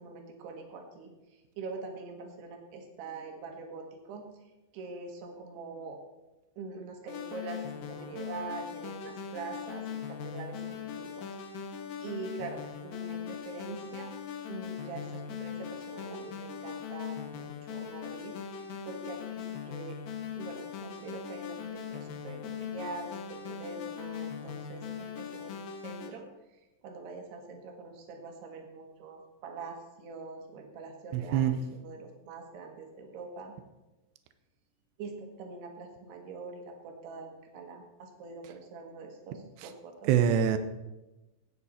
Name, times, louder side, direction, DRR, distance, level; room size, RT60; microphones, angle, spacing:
voice 1, 0.0-6.0 6.6-11.4 12.0-14.1 14.5-20.0 20.4-26.2 26.5-33.6 35.0-40.1, right 4 dB, 60° right, 2 dB, 3.4 m, -44 dB
sound 1, 7.1-26.1, left 7 dB, 80° left, 2.0 m, -40 dB
voice 2, 31.1-31.6 40.1-40.6, right 9 dB, 80° right, 10 dB, 2.5 m, -24 dB
18.0 x 9.4 x 4.2 m, 1.0 s
omnidirectional pair, 5.9 m